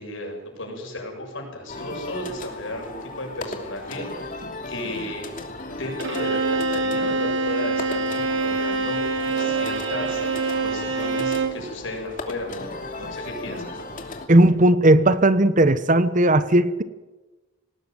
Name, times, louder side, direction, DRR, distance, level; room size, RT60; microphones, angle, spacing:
voice 1, 0.0-5.3 5.7-10.2 10.6-13.8, left 1 dB, 80° left, 2 dB, 7.2 m, -34 dB
sound 1, 1.7-14.3, left 2 dB, 45° left, 2.9 m, -36 dB
Bowed string instrument, 6.0-11.7, right 3 dB, 70° right, 2.3 m, -25 dB
voice 2, 14.3-16.8, right 1 dB, 40° right, 14 dB, 1.1 m, -16 dB
20.0 x 18.0 x 9.3 m, 1.1 s
head